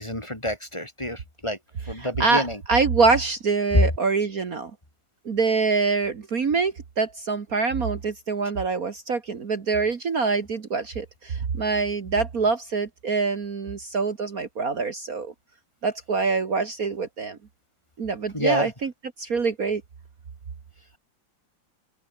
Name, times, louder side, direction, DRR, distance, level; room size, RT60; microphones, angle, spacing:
voice 1, 0.0-1.6 1.9-2.6 18.3-18.7, equal, 15° left, 3.6 m, -28 dB
voice 2, 2.0-4.7 5.3-15.3 15.8-17.4 18.0-18.9 19.2-19.8, right 4 dB, 50° right, 2.0 m, -25 dB
open air
omnidirectional pair, 2.1 m